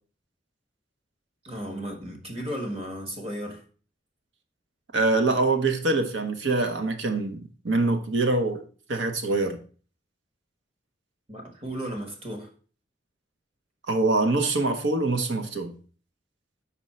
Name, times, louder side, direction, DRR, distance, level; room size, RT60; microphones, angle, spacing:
voice 1, 1.4-3.6 11.3-12.5, equal, 30° right, 1.3 m, -34 dB
voice 2, 4.9-8.6 8.9-9.6 13.9-15.7, right 2 dB, 90° right, 0.9 m, -24 dB
5.3 x 4.3 x 4.2 m
head